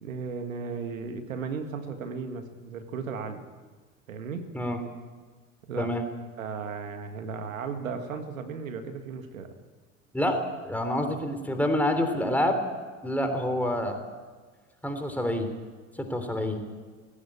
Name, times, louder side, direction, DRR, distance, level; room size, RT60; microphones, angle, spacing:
voice 1, 0.0-3.4 4.1-4.5 5.7-5.9 6.4-9.5, right 5 dB, 75° right, 7 dB, 1.9 m, -35 dB
voice 2, 10.6-12.6 13.0-14.0 14.8-15.5 16.0-16.6, left 1 dB, 5° left, 5 dB, 3.5 m, -27 dB
19.0 x 16.5 x 8.7 m, 1.4 s
figure-of-eight pair, 75°, 40 cm